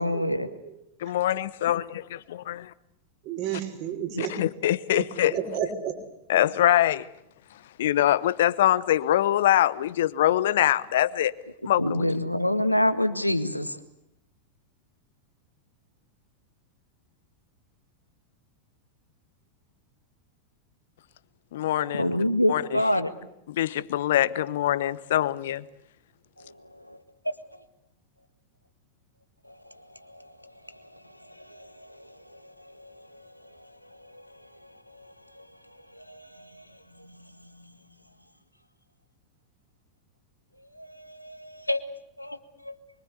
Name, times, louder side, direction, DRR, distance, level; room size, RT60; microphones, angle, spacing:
voice 1, 0.0-0.5 4.2-4.3 11.8-13.8 21.9-23.1 26.4-27.0 27.3-27.4 29.5-33.2 33.6-33.7 34.0-34.3 34.6-35.5 35.9-36.6 36.9-37.3 40.7-41.8 42.2-42.8, left 1 dB, 90° left, 10 dB, 1.8 m, -29 dB
voice 2, 1.0-2.7 4.2-5.4 6.3-7.1 7.8-11.3 11.6-12.0 21.5-22.1 22.5-22.8 23.5-25.6, left 12 dB, 55° left, 17 dB, 1.1 m, -24 dB
voice 3, 3.3-4.3 4.9-6.0, right 9 dB, 40° right, 5 dB, 5.9 m, -31 dB
25.5 x 24.0 x 8.3 m, 0.83 s
figure-of-eight pair, 90°, 0 cm